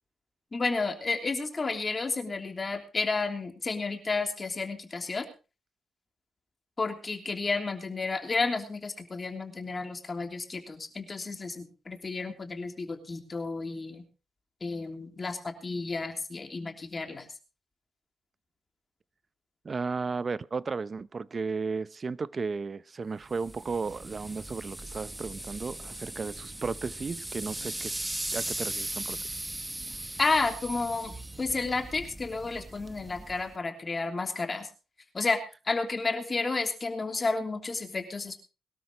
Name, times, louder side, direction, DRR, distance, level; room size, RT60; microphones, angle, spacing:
voice 1, 0.5-5.3 6.8-14.0 14.6-17.3 30.2-34.7 35.1-38.4, left 3 dB, 30° left, 3.1 m, -31 dB
voice 2, 19.6-29.2, right 4 dB, 35° right, 0.6 m, -34 dB
sound 1, 23.3-33.6, right 1 dB, 15° right, 1.4 m, -38 dB
22.0 x 12.5 x 3.0 m
cardioid pair, 95°, 0 cm